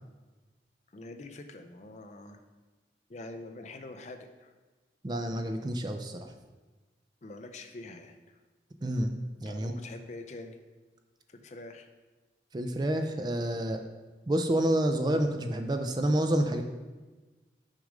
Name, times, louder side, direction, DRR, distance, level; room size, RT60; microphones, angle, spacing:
voice 1, 0.9-2.4 3.1-4.5 7.2-8.4 9.5-10.6 11.3-11.9, left 2 dB, 40° left, 6 dB, 0.5 m, -45 dB
voice 2, 5.0-6.3 8.8-9.1 9.4-9.7 12.5-13.8 14.3-16.6, right 1 dB, 25° right, 6 dB, 0.4 m, -28 dB
6.4 x 5.1 x 4.9 m, 1.3 s
head